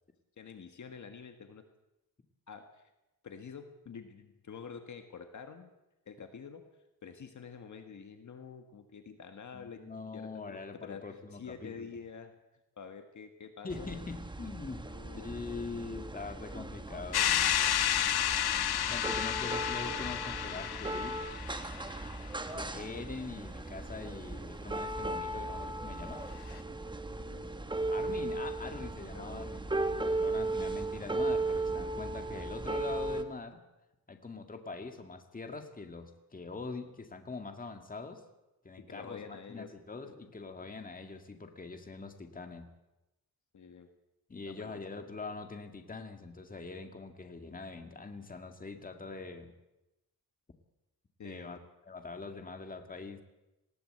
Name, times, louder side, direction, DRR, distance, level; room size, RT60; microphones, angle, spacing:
voice 1, 0.4-1.6 2.5-2.9 3.2-5.7 6.1-6.6 7.0-9.8 10.1-12.3 12.8-14.0 14.8-15.3 27.2-27.5 29.1-29.6 38.8-39.7 40.0-40.3 43.5-43.9 44.5-45.1 51.2-51.5, left 6 dB, 50° left, 7 dB, 1.6 m, -48 dB
voice 2, 9.5-11.9 13.6-14.8 15.1-17.8 18.5-18.6 18.9-21.2 22.5-26.3 27.9-29.6 30.0-33.6 34.1-38.2 38.6-42.7 44.3-49.5 51.2-51.6 51.9-53.2, left 4 dB, 20° left, 5 dB, 2.0 m, -43 dB
sound 1, 13.7-33.2, right 2 dB, 10° right, 1.2 m, -37 dB
sound 2, 17.1-21.9, left 11 dB, 80° left, 1.1 m, -31 dB
20.0 x 17.0 x 7.9 m, 0.96 s
wide cardioid pair, 140°, 38 cm